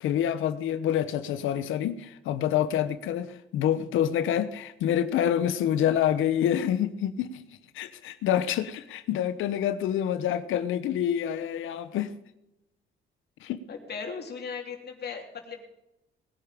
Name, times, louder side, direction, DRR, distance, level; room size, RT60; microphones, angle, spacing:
voice 1, 0.0-7.4 7.7-12.1 13.4-13.6, left 10 dB, 85° left, 13 dB, 1.0 m, -27 dB
voice 2, 13.7-15.6, left 5 dB, 55° left, 3 dB, 3.2 m, -37 dB
20.0 x 10.0 x 5.2 m, 0.89 s
cardioid pair, 90°, 20 cm